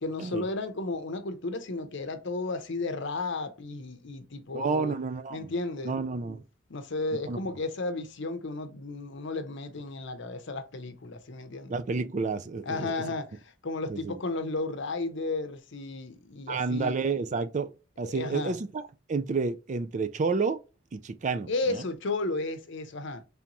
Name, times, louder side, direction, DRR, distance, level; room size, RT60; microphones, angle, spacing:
voice 1, 0.0-4.9 5.3-5.9 6.7-11.7 12.7-17.0 18.0-18.6 21.5-23.2, left 3 dB, 60° left, 0.7 m, -33 dB
voice 2, 4.5-5.5 5.8-6.4 7.3-7.4 11.7-12.9 13.9-14.1 16.5-18.8 19.1-20.6 20.9-21.8, right 4 dB, 35° right, 0.4 m, -30 dB
3.4 x 3.0 x 3.8 m
head